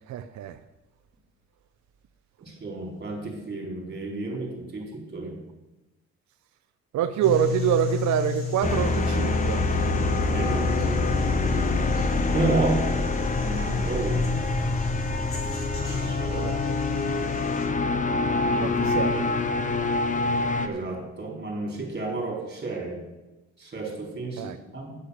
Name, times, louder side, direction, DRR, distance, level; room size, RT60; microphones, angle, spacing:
voice 1, 0.1-0.6 6.9-9.7 15.9-16.8 18.5-19.3 24.4-24.6, right 10 dB, 70° right, 0.6 m, -26 dB
voice 2, 2.4-5.4 10.3-11.0 12.3-12.8 13.4-14.4 15.8-16.4 20.6-23.0 23.6-25.0, right 3 dB, 35° right, 4.1 m, -31 dB
sound 1, 7.2-17.7, left 9 dB, 45° left, 3.0 m, -36 dB
sound 2, 8.6-20.7, left 3 dB, 25° left, 0.8 m, -25 dB
10.5 x 5.7 x 6.7 m
cardioid pair, 90°, 30 cm